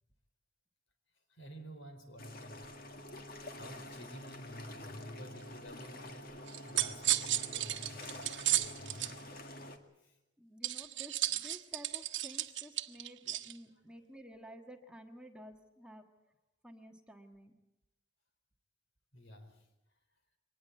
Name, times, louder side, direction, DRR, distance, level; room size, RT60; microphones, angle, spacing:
voice 1, 1.3-2.6 3.6-9.1 10.0-10.2 13.7-13.8 19.1-19.7, equal, 80° left, 7 dB, 4.2 m, -50 dB
sound 1, 2.2-9.8, left 1 dB, 50° left, 2.0 m, -48 dB
sound 2, 6.5-9.1 10.6-13.5, right 14 dB, 70° right, 1.0 m, -34 dB
voice 2, 10.4-16.1 16.6-17.5, equal, 5° right, 3 dB, 1.5 m, -52 dB
24.0 x 19.5 x 8.3 m, 0.91 s
head